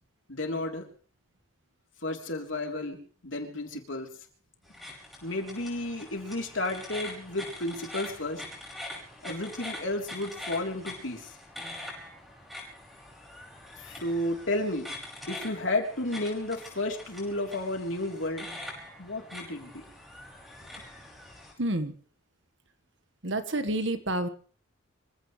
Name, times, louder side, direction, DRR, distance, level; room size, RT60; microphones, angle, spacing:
voice 1, 0.3-0.8 2.0-3.0 3.2-4.1 5.2-8.4 9.2-11.3 13.8-14.9 15.3-18.5 19.0-19.8, left 2 dB, 65° left, 2 dB, 3.5 m, -32 dB
sound 1, 4.6-21.5, left 1 dB, ahead, 5.7 m, -44 dB
voice 2, 21.6-21.9 23.2-24.3, right 1 dB, 60° right, 9 dB, 1.5 m, -29 dB
26.0 x 16.0 x 3.3 m, 0.43 s
head